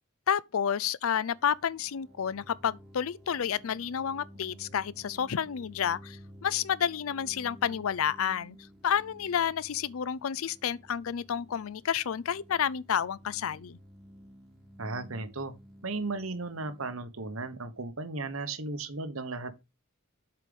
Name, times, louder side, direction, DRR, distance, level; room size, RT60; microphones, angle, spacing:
voice 1, 0.3-8.6 8.8-13.8, left 8 dB, 70° left, 0.4 m, -30 dB
sound 1, 1.1-18.7, equal, ahead, 3.2 m, -53 dB
voice 2, 14.8-15.5 15.8-19.5, right 3 dB, 70° right, 1.2 m, -35 dB
7.5 x 4.9 x 5.3 m
head